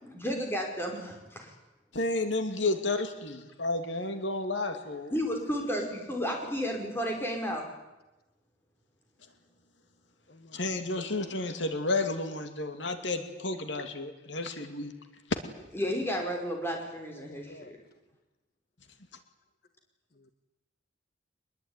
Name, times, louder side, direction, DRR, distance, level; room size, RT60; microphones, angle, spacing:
voice 1, 0.0-1.5 5.1-7.6 15.7-17.8, equal, 10° left, 2 dB, 5.0 m, -32 dB
voice 2, 1.9-5.1 10.5-14.9, left 2 dB, 75° left, 7 dB, 2.5 m, -31 dB
voice 3, 10.3-10.9 17.2-17.8 20.2-20.3, left 2 dB, 50° left, 9 dB, 1.3 m, -51 dB
24.0 x 21.5 x 9.8 m, 1.1 s
head